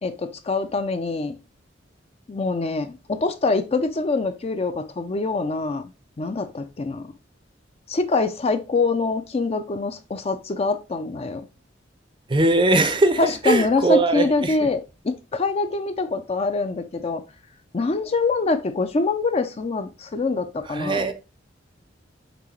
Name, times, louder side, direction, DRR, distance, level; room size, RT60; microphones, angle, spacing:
voice 1, 0.0-1.3 2.3-5.8 6.2-7.1 7.9-11.4 13.2-17.2 17.7-21.1, left 3 dB, 35° left, 0.4 m, -24 dB
voice 2, 12.3-14.7 20.6-21.1, right 2 dB, 25° right, 0.5 m, -20 dB
6.0 x 2.8 x 3.1 m
head